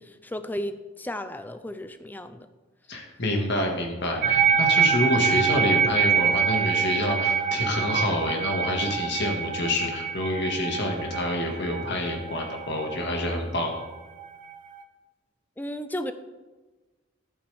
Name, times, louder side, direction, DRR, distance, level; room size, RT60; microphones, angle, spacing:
voice 1, 0.0-2.5 15.6-16.1, left 1 dB, 10° left, 10 dB, 0.5 m, -34 dB
voice 2, 2.9-13.8, left 1 dB, 60° left, 2 dB, 1.7 m, -27 dB
sound 1, 4.2-14.8, right 7 dB, 40° right, 0.7 m, -26 dB
11.5 x 8.7 x 3.4 m, 1.2 s
head